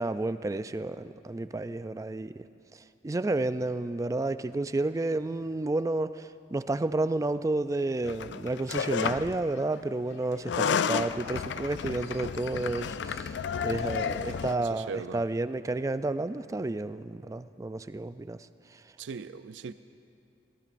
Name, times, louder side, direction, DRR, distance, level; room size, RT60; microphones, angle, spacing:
voice 1, 0.0-2.5 2.7-18.8, right 2 dB, 20° right, 12 dB, 0.3 m, -31 dB
sound 1, 8.0-9.4 10.3-14.6, left 6 dB, 70° left, 0.4 m, -31 dB
voice 2, 14.6-15.2 19.0-19.7, right 5 dB, 85° right, 11 dB, 0.4 m, -39 dB
25.0 x 18.0 x 2.6 m, 2.5 s
head